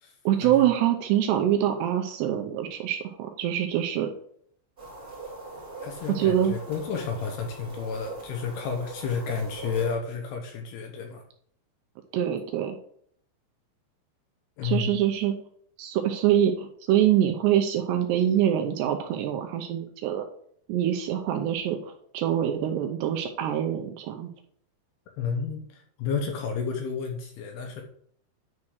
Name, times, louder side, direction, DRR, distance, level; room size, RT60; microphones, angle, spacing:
voice 1, 0.3-4.1 6.1-6.5 12.1-12.8 14.6-15.3 15.8-20.2 20.7-24.3, right 10 dB, 80° right, 5 dB, 2.6 m, -25 dB
Denver Sculpture Lao Tsu, 4.8-9.9, right 2 dB, 15° right, 2.3 m, -41 dB
voice 2, 5.8-11.2 14.6-15.0 25.2-27.8, left 5 dB, 75° left, 4 dB, 2.5 m, -31 dB
9.7 x 4.5 x 6.4 m, 0.64 s
omnidirectional pair, 5.5 m